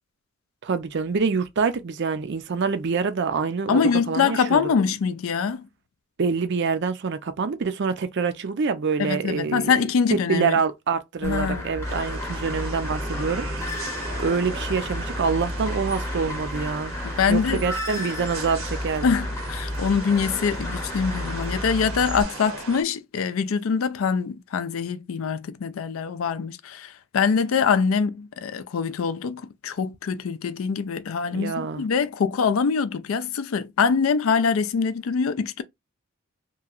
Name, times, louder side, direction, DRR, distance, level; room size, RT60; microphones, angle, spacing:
voice 1, 0.6-4.6 6.2-9.8 10.1-13.9 14.2-16.9 17.3-19.2 31.3-31.9, right 5 dB, 55° right, 0.5 m, -26 dB
voice 2, 3.7-5.7 9.0-10.6 11.2-11.6 17.0-17.6 19.0-35.6, left 6 dB, 80° left, 0.4 m, -24 dB
sound 1, 11.2-22.2, left 1 dB, 15° left, 0.7 m, -32 dB
sound 2, 11.8-22.8, right 3 dB, 80° right, 1.0 m, -37 dB
2.9 x 2.7 x 2.4 m
head